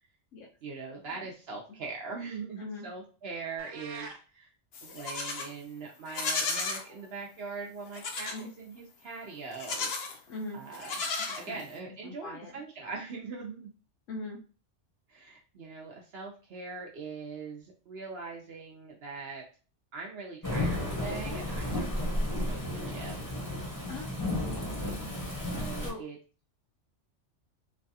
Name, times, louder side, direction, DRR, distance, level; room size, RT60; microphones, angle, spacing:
voice 1, 0.6-4.5 4.8-9.9 10.5-11.0 11.4-13.7 15.1-19.4 19.9-23.4 24.9-25.0 25.5-26.2, right 4 dB, 65° right, -1 dB, 0.8 m, -42 dB
sound 1, 3.6-4.2, right 4 dB, 85° right, 1.0 m, -43 dB
Livestock farm animals working animals, 4.7-5.5 6.1-6.8 7.9-8.4 9.5-10.2 10.7-11.8, left 4 dB, 65° left, 0.8 m, -34 dB
voice 2, 10.3-10.6 11.5-11.6 12.0-12.5 14.1-14.4 21.2-21.4 23.9-24.1 25.5-26.0, left 2 dB, 90° left, -2 dB, 1.0 m, -40 dB
Thunderstorm / Rain, 20.4-25.9, left 1 dB, 20° left, 0.7 m, -33 dB
3.2 x 2.3 x 2.7 m, 0.36 s
omnidirectional pair, 1.2 m